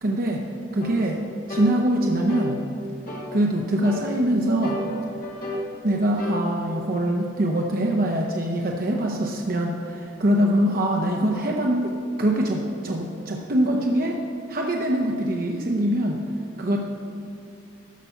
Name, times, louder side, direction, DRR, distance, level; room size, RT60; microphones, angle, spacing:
voice 1, 0.0-0.4 0.7-1.2 1.5-2.6 3.3-4.8 5.8-11.9 12.2-14.2 14.5-16.2 16.6-16.8, right 1 dB, 45° right, 0 dB, 0.7 m, -23 dB
sound 1, 0.8-1.0 1.5-1.7 2.3-2.5 3.1-3.3 3.8-4.1 4.6-5.7 6.2-6.4, left 1 dB, 40° left, 1.4 m, -31 dB
13.5 x 5.6 x 5.7 m, 2.5 s
head